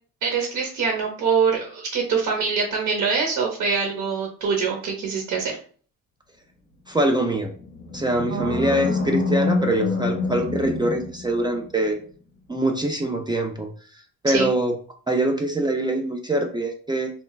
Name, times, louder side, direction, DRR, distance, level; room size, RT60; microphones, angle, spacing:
voice 1, 0.2-5.6 8.3-9.2 14.3-14.5, right 5 dB, 75° right, 0 dB, 0.8 m, -24 dB
voice 2, 6.9-7.5 7.9-12.0 12.5-13.7 14.2-14.7 15.1-17.1, right 1 dB, 15° right, 2 dB, 0.3 m, -23 dB
Animal, 7.4-11.8, left 4 dB, 90° left, 0.9 m, -27 dB
3.0 x 2.3 x 2.2 m, 0.43 s
cardioid pair, 90°, 30 cm